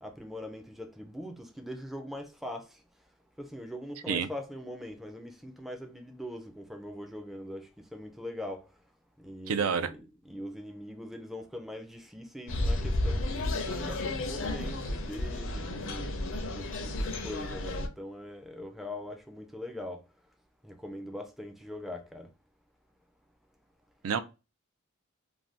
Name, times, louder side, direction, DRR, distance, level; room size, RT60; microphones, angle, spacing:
voice 1, 0.0-2.7 3.4-8.7 9.2-16.1 16.5-20.0 20.6-22.3, left 1 dB, ahead, 0.4 m, -42 dB
voice 2, 9.5-9.9 24.0-24.2, right 6 dB, 75° right, 0.4 m, -28 dB
sound 1, 12.5-17.9, left 2 dB, 65° left, 0.5 m, -32 dB
2.5 x 2.2 x 3.3 m
head